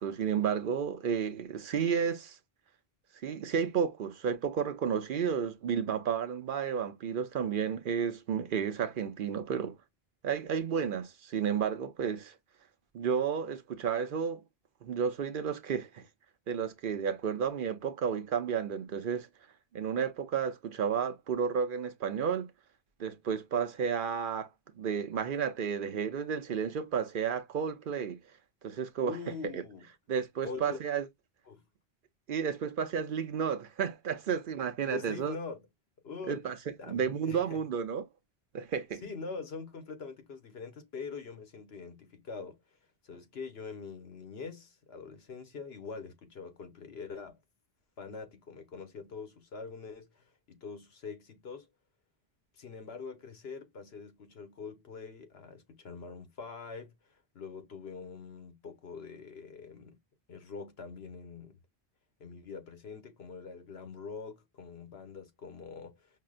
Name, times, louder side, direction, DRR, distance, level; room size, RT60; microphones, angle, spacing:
voice 1, 0.0-2.4 3.2-9.8 10.2-12.3 12.9-14.4 14.8-16.0 16.5-19.3 19.7-22.5 23.0-24.5 24.8-28.2 28.6-29.2 29.5-29.6 30.1-31.1 32.3-35.3 36.3-36.6 36.8-38.0 38.5-39.0, right 7 dB, 60° right, 0.7 m, -32 dB
voice 2, 29.0-29.8 30.4-30.8 31.5-31.6 34.8-35.6 36.0-36.4 36.8-37.6 39.0-42.6 43.0-47.4 48.0-51.7 52.5-60.0 60.3-61.6 62.2-66.1, left 5 dB, 80° left, 1.3 m, -44 dB
5.5 x 2.1 x 2.4 m
omnidirectional pair, 1.0 m